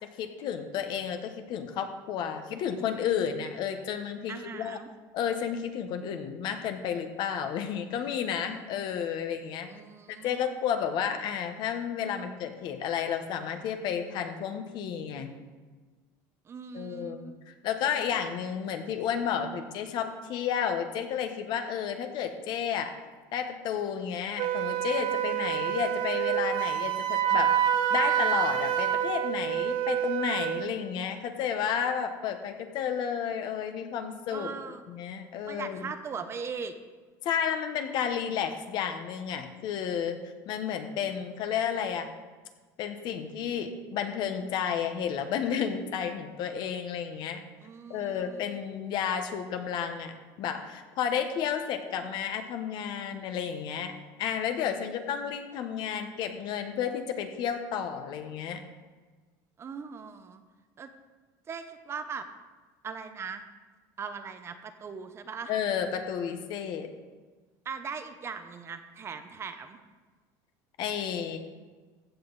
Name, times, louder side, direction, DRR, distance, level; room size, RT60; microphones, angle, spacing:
voice 1, 0.0-4.8 5.1-9.7 10.2-15.3 16.7-22.9 23.3-27.5 27.9-34.5 34.9-35.9 37.2-40.2 40.5-42.1 42.8-47.4 47.9-50.1 50.4-53.9 54.2-58.6 65.5-66.9 70.8-71.4, left 8 dB, 55° left, 7 dB, 1.2 m, -32 dB
voice 2, 4.3-4.9 9.7-10.5 16.5-17.5 34.3-34.8 35.5-36.7 47.6-48.6 59.6-60.4 60.8-60.9 61.5-62.3 62.8-63.4 64.0-65.5 67.6-69.8, right 6 dB, 30° right, 9 dB, 0.8 m, -39 dB
Wind instrument woodwind instrument, 24.4-30.7, right 10 dB, 60° right, 0.9 m, -27 dB
15.0 x 8.0 x 4.1 m, 1.4 s
cardioid pair, 130°, 9 cm